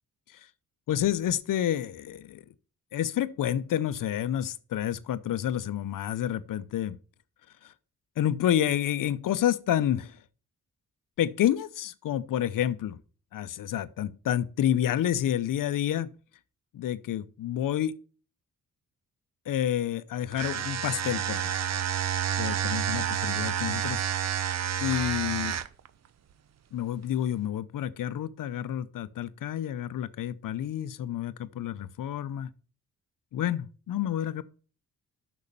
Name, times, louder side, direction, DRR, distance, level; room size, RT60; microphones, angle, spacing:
voice 1, 0.9-2.4 2.9-7.0 7.6-7.7 8.2-10.2 11.2-13.0 13.3-16.1 16.7-17.9 19.5-21.5 22.4-24.0 24.8-25.6 26.7-32.5 33.3-34.4, left 11 dB, 75° left, 0.7 m, -29 dB
sound 1, 20.3-25.9, right 9 dB, 50° right, 0.7 m, -29 dB
6.6 x 6.3 x 6.9 m
cardioid pair, 70°, 33 cm